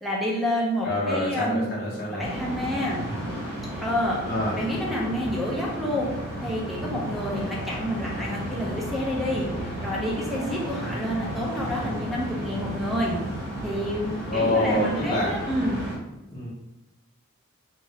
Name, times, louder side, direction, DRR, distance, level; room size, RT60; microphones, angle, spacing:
voice 1, 0.0-1.7 2.1-3.0 3.8-4.2 4.6-6.1 6.4-13.2 13.6-15.8, equal, ahead, -4 dB, 0.5 m, -28 dB
voice 2, 0.8-2.2 4.2-4.6 14.3-15.3 16.3-16.5, left 1 dB, 50° left, -5 dB, 0.8 m, -26 dB
sound 1, 2.2-16.0, right 1 dB, 50° right, 1.0 m, -33 dB
sound 2, 3.5-6.7 7.9-11.1, right 1 dB, 80° right, 0.8 m, -45 dB
2.8 x 2.4 x 3.1 m, 0.96 s
head